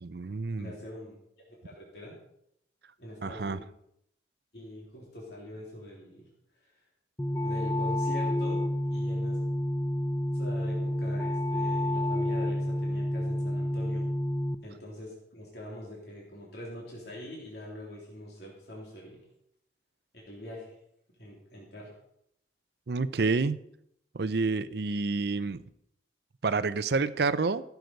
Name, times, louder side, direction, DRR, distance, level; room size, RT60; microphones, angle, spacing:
voice 1, 0.0-0.7 3.2-3.6 22.9-23.6 24.1-25.6 26.4-27.6, right 4 dB, 60° right, 14 dB, 0.5 m, -28 dB
voice 2, 0.6-1.2 1.5-2.1 3.0-3.6 4.5-6.3 7.4-9.4 10.3-14.0 14.6-19.2 20.1-20.7 21.2-21.9, left 1 dB, 60° left, -4 dB, 3.3 m, -43 dB
sound 1, 7.2-14.6, left 1 dB, 15° left, 0.7 m, -29 dB
15.5 x 8.0 x 5.2 m, 0.75 s
head